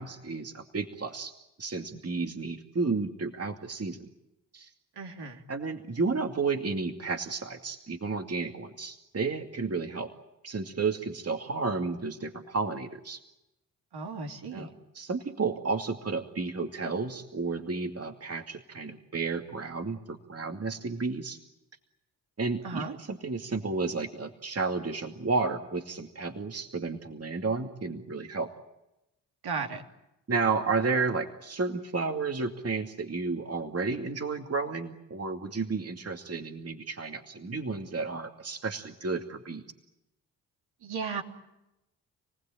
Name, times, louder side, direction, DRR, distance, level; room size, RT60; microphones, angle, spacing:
voice 1, 0.0-1.3 1.6-4.0 4.5-4.7 5.5-10.1 10.4-13.2 14.5-14.7 14.9-21.4 22.4-28.5 30.3-39.6, right 4 dB, 35° right, 5 dB, 2.4 m, -32 dB
voice 2, 5.0-5.4 13.9-14.7 22.6-22.9 29.4-29.8 40.8-41.2, right 5 dB, 65° right, 3 dB, 3.3 m, -35 dB
28.5 x 19.0 x 8.9 m, 0.92 s
hypercardioid pair, 45°, 43 cm